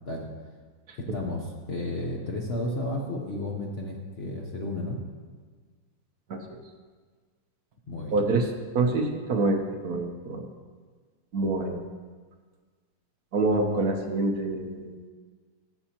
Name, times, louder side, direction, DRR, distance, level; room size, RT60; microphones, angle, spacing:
voice 1, 1.1-5.0 7.9-8.2, left 2 dB, 50° left, -1 dB, 0.7 m, -32 dB
voice 2, 8.1-8.5 8.7-10.5 11.3-11.8 13.3-14.9, right 2 dB, 55° right, 3 dB, 1.2 m, -26 dB
16.5 x 7.0 x 2.9 m, 1.5 s
omnidirectional pair, 2.2 m